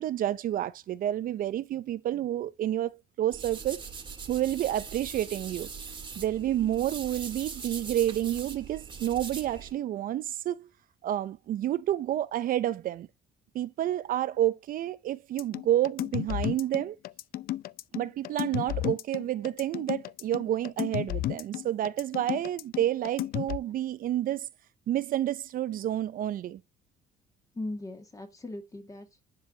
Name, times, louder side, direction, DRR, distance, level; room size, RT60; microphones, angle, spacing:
voice 1, 0.0-3.8 4.3-5.7 6.2-10.7 11.0-13.1 13.5-17.0 17.9-24.5 24.9-26.6, right 12 dB, 55° right, 0.5 m, -29 dB
sound 1, 3.3-9.7, right 5 dB, 25° right, 1.8 m, -41 dB
sound 2, 15.4-23.6, left 15 dB, 60° left, 0.4 m, -33 dB
voice 2, 27.6-29.2, left 2 dB, 20° left, 2.0 m, -39 dB
10.5 x 4.7 x 2.7 m
cardioid pair, 110°, 17 cm